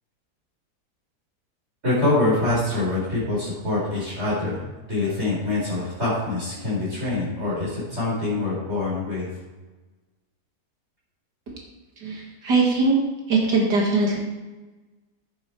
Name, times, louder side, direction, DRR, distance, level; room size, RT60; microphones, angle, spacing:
voice 1, 1.8-9.3, left 2 dB, 40° right, -7 dB, 4.7 m, -25 dB
voice 2, 12.0-13.0 13.3-14.2, right 3 dB, 85° right, -1 dB, 2.5 m, -21 dB
10.5 x 9.0 x 4.7 m, 1.2 s
omnidirectional pair, 1.7 m